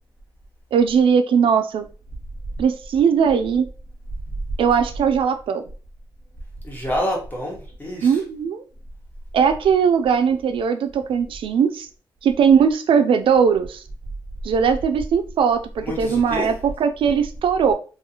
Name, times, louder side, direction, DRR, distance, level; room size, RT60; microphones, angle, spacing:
voice 1, 0.7-1.9 2.6-3.7 4.6-5.6 8.0-8.6 9.3-11.9 12.2-13.8 14.4-17.7, right 6 dB, 85° right, 0.4 m, -19 dB
voice 2, 6.6-8.2 15.8-16.5, equal, 20° left, 1.2 m, -27 dB
3.9 x 2.3 x 2.8 m
wide cardioid pair, 150°, 9 cm